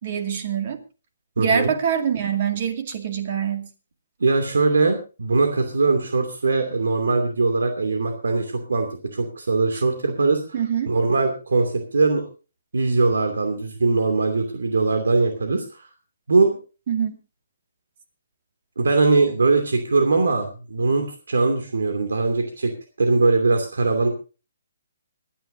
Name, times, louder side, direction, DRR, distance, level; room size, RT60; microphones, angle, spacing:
voice 1, 0.0-0.8 1.4-3.7 10.5-10.9 16.9-17.1, right 8 dB, 40° right, 6 dB, 2.2 m, -24 dB
voice 2, 1.4-1.7 4.2-10.4 10.9-12.3 12.7-15.9 16.3-16.6 18.8-22.7 23.0-24.1, right 3 dB, 85° right, 5 dB, 2.6 m, -21 dB
26.0 x 10.5 x 2.7 m, 0.33 s
hypercardioid pair, 165°, 0 cm